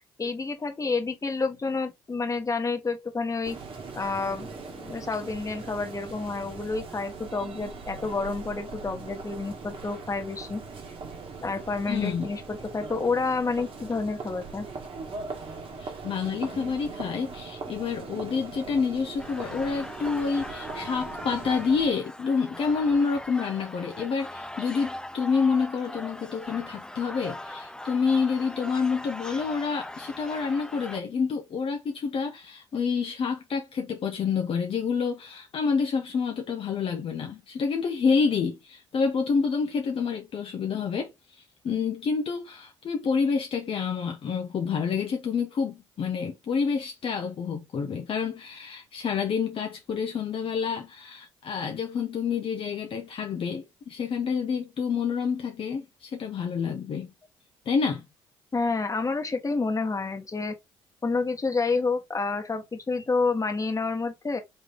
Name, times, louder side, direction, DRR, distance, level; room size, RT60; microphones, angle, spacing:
voice 1, 0.2-3.6 3.9-10.6 11.4-14.7 58.5-60.6 61.0-64.4, left 4 dB, 30° left, 1.5 m, -29 dB
sound 1, 3.4-21.9, right 4 dB, 50° right, 1.8 m, -40 dB
voice 2, 11.9-12.3 15.8-41.1 41.4-57.1 57.7-58.1, left 5 dB, 50° left, 1.0 m, -28 dB
sound 2, 19.2-31.0, left 1 dB, 5° left, 0.5 m, -40 dB
4.0 x 3.2 x 3.6 m
hypercardioid pair, 60°, 12 cm